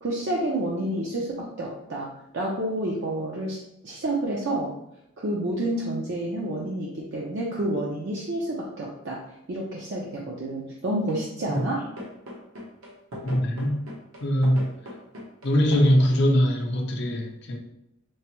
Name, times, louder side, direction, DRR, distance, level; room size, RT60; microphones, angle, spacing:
voice 1, 0.0-3.6 3.8-4.7 5.2-9.2 9.5-11.9, right 1 dB, 55° right, -3 dB, 0.5 m, -29 dB
sound 1, 11.1-11.3 11.5-15.9, left 1 dB, 80° right, 0.9 m, -39 dB
voice 2, 13.2-13.8 14.2-14.7 15.4-17.6, equal, 50° left, 2 dB, 0.5 m, -22 dB
4.6 x 2.0 x 2.9 m, 0.82 s
head